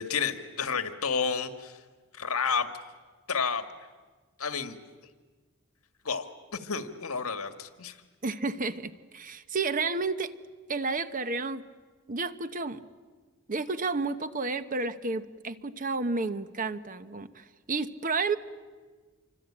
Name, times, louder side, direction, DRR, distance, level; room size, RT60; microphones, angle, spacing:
voice 1, 0.0-1.8 2.1-2.7 3.3-3.7 4.4-4.8 6.1-8.0, left 5 dB, 75° left, 9 dB, 1.8 m, -30 dB
voice 2, 8.2-10.3 10.7-11.6 12.1-12.8 13.5-18.4, right 3 dB, 40° right, 11 dB, 1.0 m, -31 dB
27.5 x 25.0 x 8.7 m, 1.4 s
head